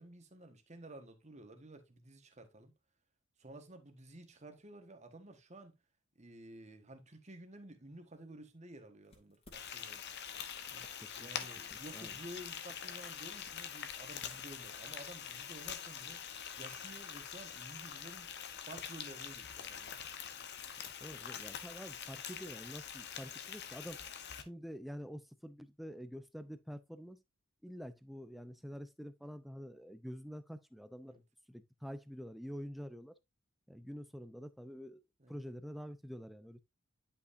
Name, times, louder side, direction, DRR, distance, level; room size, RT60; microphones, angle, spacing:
voice 1, 0.0-2.7 3.4-5.8 6.1-10.0 11.2-16.2 16.6-18.3 18.7-20.0 23.2-23.3 31.0-31.2 35.2-35.4, right 1 dB, 30° right, 1.4 m, -52 dB
sound 1, 9.0-11.0 11.3-17.3, left 2 dB, 25° left, 2.5 m, -62 dB
Frying (food), 9.5-24.4, left 8 dB, 50° left, 1.0 m, -45 dB
voice 2, 10.7-11.3 11.9-12.2 21.0-24.0 24.4-27.2 27.6-31.2 31.5-33.1 33.7-35.0 35.3-36.6, equal, ahead, 0.6 m, -47 dB
10.5 x 5.6 x 2.6 m
head